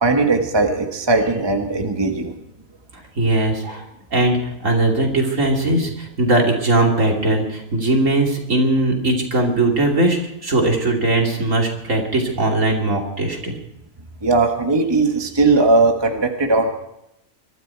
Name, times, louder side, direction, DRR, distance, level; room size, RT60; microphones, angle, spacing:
voice 1, 0.0-2.3 14.2-16.7, right 3 dB, 20° right, 4 dB, 1.4 m, -18 dB
voice 2, 3.2-3.8 4.1-13.5, right 2 dB, 65° right, 0 dB, 3.2 m, -19 dB
22.5 x 13.5 x 4.5 m, 0.85 s
omnidirectional pair, 1.4 m